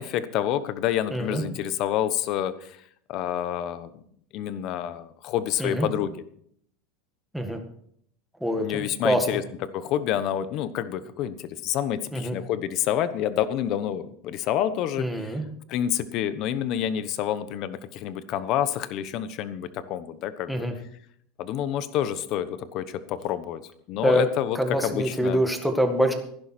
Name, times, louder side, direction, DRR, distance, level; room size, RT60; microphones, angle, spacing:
voice 1, 0.0-2.8 3.1-4.0 4.3-6.1 8.6-9.4 9.7-15.3 15.7-20.5 21.4-23.6 23.9-24.6 24.8-25.4, left 10 dB, 45° left, 13 dB, 1.1 m, -28 dB
voice 2, 1.1-1.4 5.6-5.9 7.3-7.6 8.4-9.4 12.1-12.4 15.0-15.4 20.5-20.7 24.0-24.3 24.5-26.1, equal, ahead, 4 dB, 1.8 m, -25 dB
15.5 x 11.0 x 4.4 m, 0.66 s
supercardioid pair, 150°, 0 cm